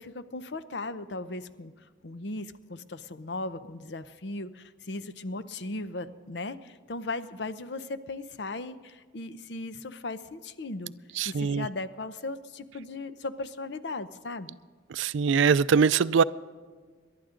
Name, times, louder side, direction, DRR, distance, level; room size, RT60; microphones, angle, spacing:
voice 1, 0.0-1.7 2.0-10.9 11.2-14.6, left 2 dB, 65° left, 12 dB, 0.7 m, -37 dB
voice 2, 11.2-11.7 14.9-16.2, right 6 dB, 80° right, 17 dB, 0.4 m, -22 dB
27.5 x 12.0 x 3.8 m, 1.5 s
head